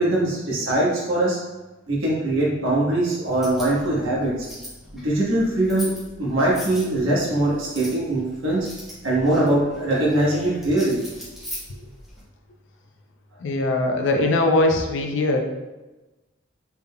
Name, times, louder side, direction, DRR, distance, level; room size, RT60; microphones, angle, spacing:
voice 1, 0.0-1.4 1.9-4.3 4.9-5.9 6.2-8.7 9.0-11.0, right 1 dB, 85° right, -5 dB, 1.1 m, -22 dB
sound 1, 3.3-12.2, equal, ahead, 0.8 m, -40 dB
voice 2, 13.4-15.4, left 2 dB, 70° left, 3 dB, 0.4 m, -21 dB
3.5 x 3.3 x 2.2 m, 1.1 s
head